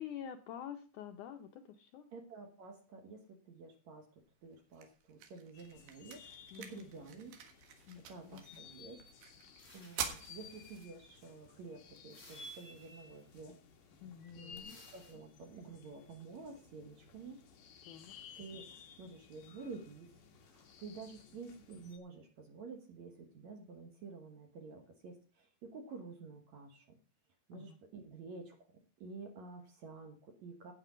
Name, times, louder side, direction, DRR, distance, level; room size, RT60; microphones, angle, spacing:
voice 1, 0.0-2.1 6.5-6.8 7.9-8.0 8.3-8.4 14.0-14.8 17.9-18.1 27.5-27.7, left 9 dB, 85° left, 6 dB, 1.7 m, -47 dB
voice 2, 2.1-7.3 8.0-9.3 9.7-13.6 14.4-17.4 18.4-27.0 27.5-28.7 29.0-30.7, right 4 dB, 60° right, 4 dB, 2.1 m, -50 dB
sound 1, 4.2-16.2, right 7 dB, 80° right, 3.5 m, -50 dB
sound 2, 5.5-22.0, left 5 dB, 60° left, 2.9 m, -57 dB
sound 3, 9.6-11.0 12.1-13.3 14.6-15.1, left 1 dB, 15° left, 5.1 m, -61 dB
12.0 x 9.0 x 5.1 m, 0.37 s
omnidirectional pair, 4.5 m